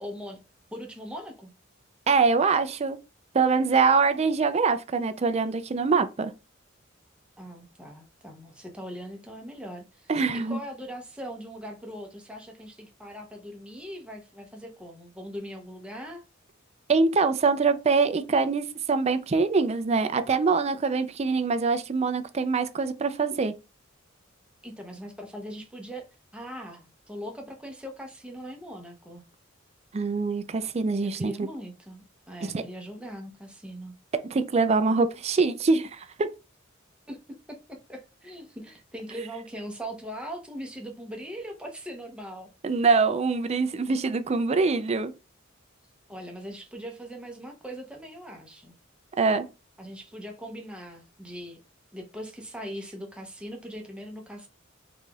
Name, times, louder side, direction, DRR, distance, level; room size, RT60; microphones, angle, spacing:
voice 1, 0.0-0.4 0.7-1.5 7.4-16.2 24.6-26.0 26.3-29.2 31.0-34.0 37.1-42.5 46.1-48.7 49.8-51.6 51.9-54.5, equal, 5° right, 0.8 m, -40 dB
voice 2, 2.1-3.0 3.3-6.3 10.1-10.6 16.9-23.5 29.9-31.5 32.4-32.6 34.3-36.3 42.6-45.1 49.2-49.5, right 4 dB, 30° right, 0.4 m, -24 dB
3.9 x 3.2 x 2.3 m
head